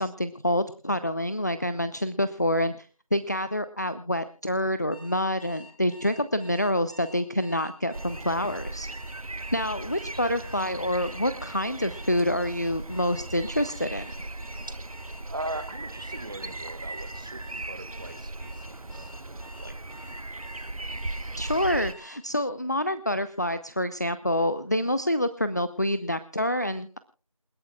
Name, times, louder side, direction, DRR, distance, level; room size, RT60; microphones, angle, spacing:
voice 1, 0.0-8.9 9.5-14.1 21.4-27.0, left 1 dB, 30° left, 13 dB, 0.6 m, -27 dB
Alarm, 4.9-22.2, left 2 dB, 85° left, 5.8 m, -50 dB
sound 1, 7.9-21.9, right 2 dB, 85° right, 1.0 m, -38 dB
voice 2, 9.9-10.4 14.7-14.8 15.3-19.1 19.6-20.2, right 1 dB, 35° right, 11 dB, 1.7 m, -40 dB
28.0 x 12.0 x 2.3 m, 0.36 s
figure-of-eight pair, 175°, 18 cm